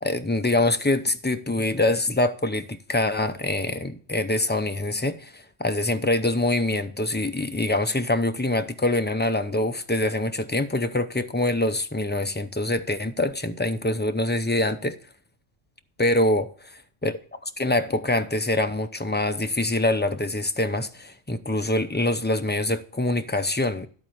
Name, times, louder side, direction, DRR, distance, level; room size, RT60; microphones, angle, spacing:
voice 1, 0.0-15.0 16.0-16.5 17.0-17.2 17.4-23.9, left 1 dB, 15° left, 0.4 m, -24 dB
12.0 x 4.2 x 7.7 m
omnidirectional pair, 1.1 m